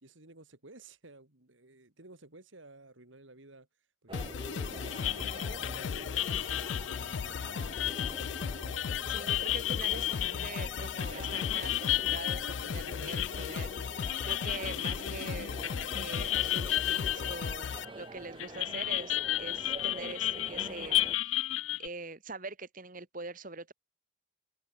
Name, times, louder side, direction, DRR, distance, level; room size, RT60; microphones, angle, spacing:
voice 1, 0.0-3.7 4.0-7.7, right 2 dB, 75° right, 2.8 m, -54 dB
sound 1, 4.1-17.8, left 6 dB, 65° left, 0.4 m, -37 dB
sound 2, 4.1-21.2, right 2 dB, 25° right, 0.8 m, -47 dB
sound 3, 4.9-18.1 18.4-21.9, left 14 dB, 90° left, 0.8 m, -33 dB
voice 2, 9.1-15.6 16.0-21.5 21.8-23.7, right 3 dB, 45° right, 2.3 m, -44 dB
head